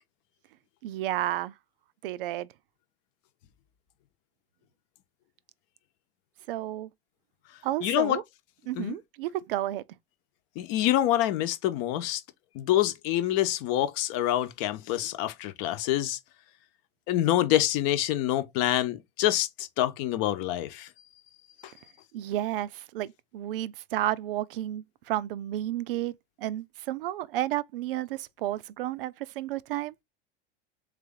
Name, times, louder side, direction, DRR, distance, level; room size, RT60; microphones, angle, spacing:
voice 1, 0.8-1.5 2.0-2.5 6.5-6.9 7.6-8.2 8.7-9.8 22.1-26.1 26.4-29.9, right 13 dB, 70° right, 0.5 m, -31 dB
voice 2, 7.8-8.2 8.8-9.0 10.6-12.2 12.5-16.2 17.1-20.9 21.6-21.7, left 13 dB, 55° left, 0.8 m, -26 dB
3.5 x 3.3 x 3.6 m
hypercardioid pair, 80°, 29 cm